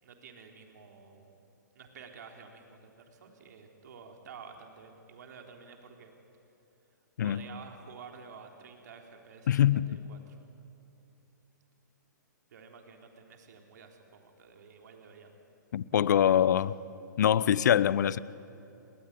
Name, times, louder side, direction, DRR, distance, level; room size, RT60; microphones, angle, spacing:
voice 1, 0.0-1.3 1.8-6.1 7.2-10.4 12.5-15.3 16.1-16.3 16.6-16.7, right 5 dB, 60° right, 3 dB, 3.8 m, -51 dB
voice 2, 9.5-9.9 15.7-16.8 17.2-18.2, left 10 dB, 65° left, 19 dB, 0.8 m, -24 dB
29.5 x 20.0 x 9.6 m, 2.8 s
hypercardioid pair, 120°, 10 cm